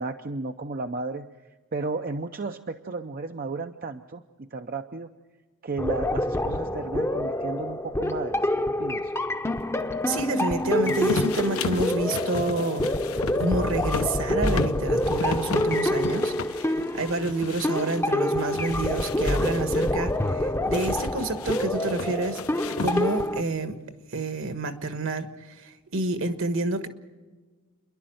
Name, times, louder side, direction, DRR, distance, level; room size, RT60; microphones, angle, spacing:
voice 1, 0.0-1.3 1.7-5.1 5.6-9.1, right 3 dB, 40° right, 0.6 m, -33 dB
sound 1, 5.8-23.4, left 1 dB, 10° left, 0.7 m, -27 dB
voice 2, 10.1-12.9 13.4-22.4 22.8-23.8 24.1-26.9, right 2 dB, 60° right, 1.4 m, -29 dB
sound 2, 10.9-18.0 18.4-19.9 20.7-23.3, left 4 dB, 70° left, 0.8 m, -34 dB
29.5 x 11.0 x 7.8 m
head